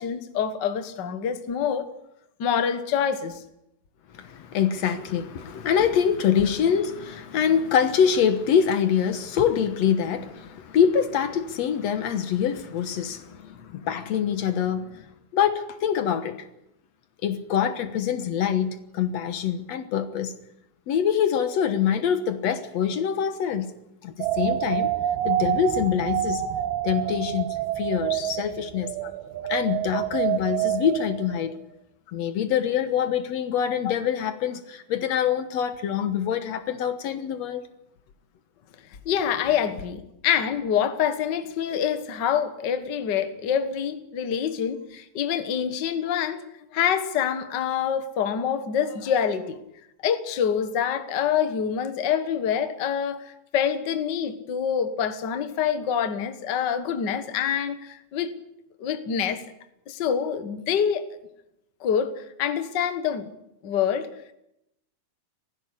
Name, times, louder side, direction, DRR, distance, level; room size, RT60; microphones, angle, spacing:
voice 1, 0.0-1.9 2.4-3.4 29.0-29.1 39.0-46.4 46.7-49.6 50.0-53.2 53.5-58.3 58.8-59.4 59.9-61.0 61.8-62.1 62.4-63.3 63.6-64.1, left 8 dB, 85° left, 0.9 m, -26 dB
voice 2, 4.1-15.0 15.3-16.4 17.2-20.3 20.9-23.7 24.0-24.9 25.2-26.4 26.8-27.5 27.8-28.9 29.5-31.5 32.1-37.6, left 8 dB, 65° left, 1.8 m, -25 dB
sound 1, 24.2-31.5, right 12 dB, 90° right, 3.1 m, -27 dB
18.0 x 15.5 x 9.9 m
omnidirectional pair, 4.3 m